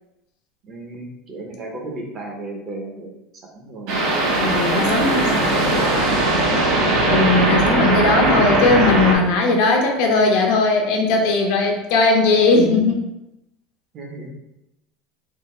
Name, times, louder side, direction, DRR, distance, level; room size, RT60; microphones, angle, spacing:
voice 1, 0.6-3.1 3.4-4.0 4.7-6.4 13.9-14.3, right 2 dB, 25° right, 1 dB, 0.7 m, -33 dB
sound 1, 3.9-9.1, right 2 dB, 55° right, 1.3 m, -19 dB
voice 2, 4.3-5.5 7.0-13.0, left 3 dB, 55° left, 1 dB, 0.8 m, -18 dB
3.6 x 2.9 x 4.2 m, 0.93 s
cardioid pair, 180°, 0 cm